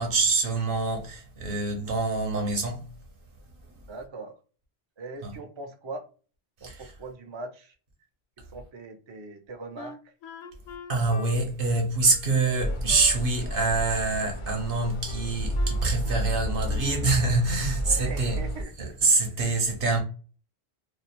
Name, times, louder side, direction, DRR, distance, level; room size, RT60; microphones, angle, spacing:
voice 1, 0.0-2.9 5.2-5.3 6.6-6.9 10.9-18.4 19.0-20.0, right 3 dB, 60° right, 1.0 m, -25 dB
voice 2, 3.9-4.3 5.0-6.0 6.6-7.7 8.4-10.1 17.8-19.2, right 3 dB, 45° right, 0.4 m, -41 dB
Wind instrument woodwind instrument, 9.8-13.2 13.5-14.6 15.1-16.4 16.7-17.1, left 5 dB, 80° left, 0.8 m, -45 dB
sound 1, 12.6-18.6, equal, 55° left, 0.3 m, -31 dB
2.5 x 2.1 x 2.8 m
omnidirectional pair, 1.1 m